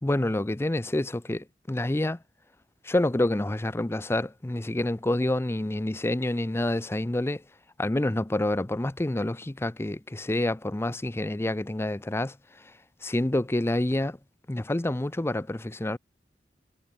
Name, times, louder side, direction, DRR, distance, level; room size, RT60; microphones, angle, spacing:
voice 1, 0.0-2.2 2.8-7.4 7.8-12.7 13.0-14.2 14.5-16.0, left 1 dB, 15° left, 0.5 m, -28 dB
head